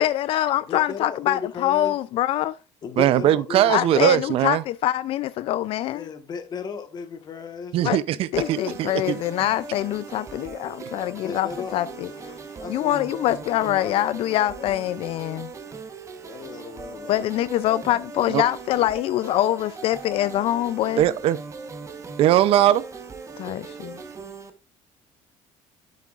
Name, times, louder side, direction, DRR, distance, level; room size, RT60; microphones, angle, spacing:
voice 1, 0.0-2.6 3.7-6.1 7.8-8.0 8.3-12.3 12.7-15.5 17.1-21.0 23.4-24.0, left 13 dB, 55° left, 0.4 m, -24 dB
voice 2, 0.7-2.0 2.8-4.2 5.9-7.8 10.9-14.1 14.6-14.7 16.2-17.3, left 6 dB, 40° left, 1.3 m, -36 dB
voice 3, 3.0-4.6 7.7-9.2 10.8-10.9 18.3-18.4 21.0-21.4 22.2-22.8, right 12 dB, 55° right, 0.5 m, -20 dB
sound 1, 8.3-24.5, right 4 dB, 25° right, 1.1 m, -39 dB
8.3 x 8.2 x 2.4 m
cardioid pair, 120°, 11 cm